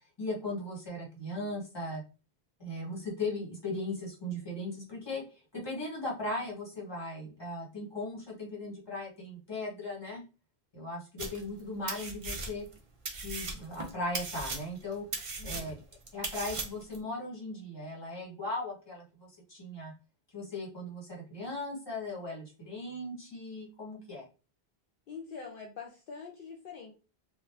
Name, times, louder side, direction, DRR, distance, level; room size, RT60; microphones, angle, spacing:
voice 1, 0.2-2.0 2.6-5.2 5.5-10.2 10.7-12.7 13.2-15.0 15.4-15.8 16.1-19.9 20.3-24.2, left 2 dB, 25° left, -3 dB, 1.0 m, -38 dB
sound 1, 11.2-11.6 11.9-12.8 13.1-17.0, right 3 dB, 45° right, 0.4 m, -38 dB
voice 2, 15.4-15.7 25.1-26.9, left 5 dB, 65° left, 0 dB, 0.7 m, -45 dB
2.5 x 2.0 x 3.2 m, 0.33 s
omnidirectional pair, 1.0 m